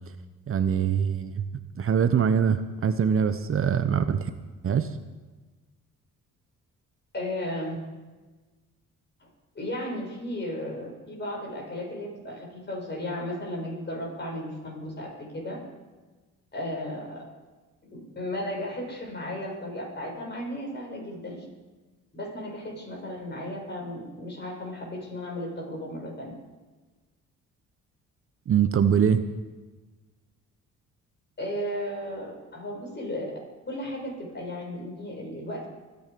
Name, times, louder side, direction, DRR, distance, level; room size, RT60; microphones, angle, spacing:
voice 1, 0.5-1.4 1.8-4.3 4.6-4.9 28.5-29.2, right 7 dB, 45° right, 10 dB, 0.8 m, -23 dB
voice 2, 7.1-7.8 9.2-9.3 9.6-15.6 16.5-17.3 18.2-21.4 22.1-26.3 31.4-33.4 33.7-35.7, left 1 dB, 35° left, -1 dB, 6.9 m, -35 dB
24.5 x 9.7 x 5.3 m, 1.3 s
cardioid pair, 90°, 30 cm